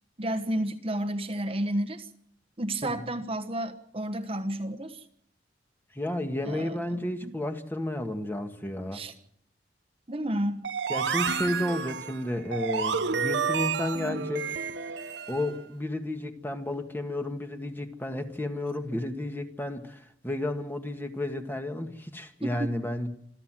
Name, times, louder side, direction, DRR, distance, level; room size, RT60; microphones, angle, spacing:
voice 1, 0.2-2.1 2.6-5.0 6.4-7.3 8.9-9.1 10.1-10.7 22.4-22.5, right 1 dB, 35° right, 8 dB, 1.3 m, -31 dB
voice 2, 5.9-9.0 10.9-14.6 15.3-23.1, left 1 dB, 10° left, 5 dB, 1.7 m, -32 dB
sound 1, 10.6-15.5, right 6 dB, 80° right, 1.0 m, -30 dB
27.0 x 13.0 x 7.6 m, 0.70 s
head